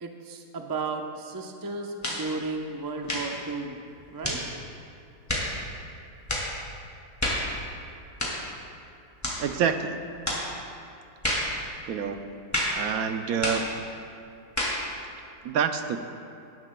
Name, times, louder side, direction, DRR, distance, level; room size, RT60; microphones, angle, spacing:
voice 1, 0.0-3.8 4.1-4.4, right 3 dB, 30° right, 3 dB, 0.3 m, -34 dB
sound 1, 2.0-2.3 3.0-3.4 4.2-4.5 5.3-5.5 6.3-6.5 7.2-7.5 8.2-8.4 9.2-9.4 10.3-10.5 11.2-11.5 12.5-12.8 13.4-13.7 14.6-14.8, equal, 10° left, 2.0 m, -28 dB
voice 2, 9.4-10.0 11.9-12.4 12.7-13.8 15.4-16.0, right 7 dB, 70° right, 8 dB, 1.0 m, -27 dB
20.0 x 11.0 x 2.2 m, 2.6 s
omnidirectional pair, 1.7 m